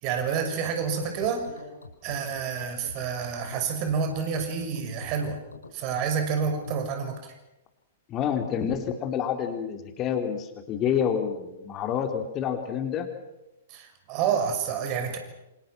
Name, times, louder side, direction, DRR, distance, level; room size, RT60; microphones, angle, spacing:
voice 1, 0.0-1.5 2.0-5.4 5.7-7.3 13.7-15.2, right 6 dB, 35° right, 6 dB, 6.1 m, -28 dB
sound 1, 0.9-6.7, left 3 dB, 80° left, 4.4 m, -44 dB
voice 2, 8.1-13.1, left 8 dB, 30° left, 5 dB, 3.7 m, -28 dB
28.0 x 27.0 x 6.1 m, 0.93 s
figure-of-eight pair, 110°, 0 cm